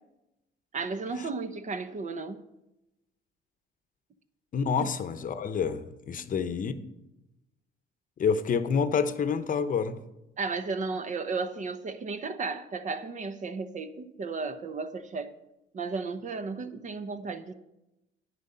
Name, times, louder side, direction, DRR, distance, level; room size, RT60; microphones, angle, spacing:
voice 1, 0.7-2.4 4.8-4.9 10.4-15.3 15.7-17.5, right 4 dB, 40° right, 0.9 m, -34 dB
voice 2, 4.5-6.7 8.2-10.0, left 6 dB, 45° left, 0.8 m, -28 dB
10.5 x 9.2 x 5.6 m
cardioid pair, 105°, 20 cm